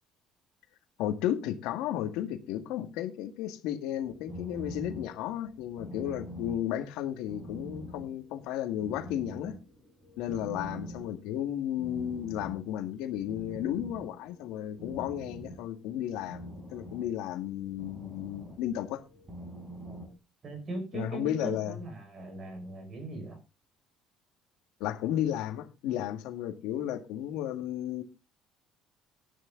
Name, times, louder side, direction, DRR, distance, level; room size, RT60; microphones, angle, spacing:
voice 1, 1.0-9.6 10.2-19.0 20.9-21.7 24.8-28.0, left 11 dB, 80° left, 1.8 m, -33 dB
sound 1, 4.0-20.1, equal, 15° right, 6.1 m, -45 dB
voice 2, 20.4-23.4, right 2 dB, 30° right, 5.1 m, -39 dB
12.0 x 11.0 x 3.8 m
cardioid pair, 155°, 0 cm